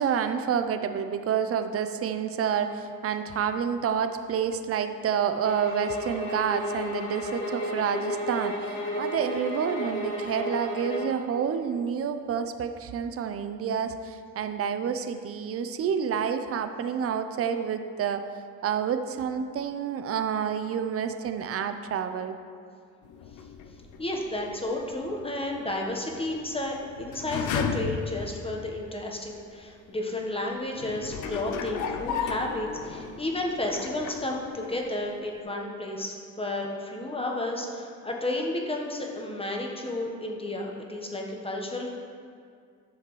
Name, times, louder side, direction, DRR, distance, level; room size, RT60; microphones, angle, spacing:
voice 1, 0.0-18.2 18.6-22.4, right 7 dB, 50° right, 9 dB, 0.6 m, -29 dB
sound 1, 5.4-11.2, left 1 dB, 40° left, 2.1 m, -33 dB
sound 2, 23.0-29.1 29.7-29.8 30.7-35.0 35.2-35.3, left 6 dB, 80° left, 0.6 m, -36 dB
voice 2, 24.0-41.9, left 1 dB, 20° left, 0 dB, 1.1 m, -32 dB
11.0 x 6.7 x 3.1 m, 2.3 s
cardioid pair, 90°, 30 cm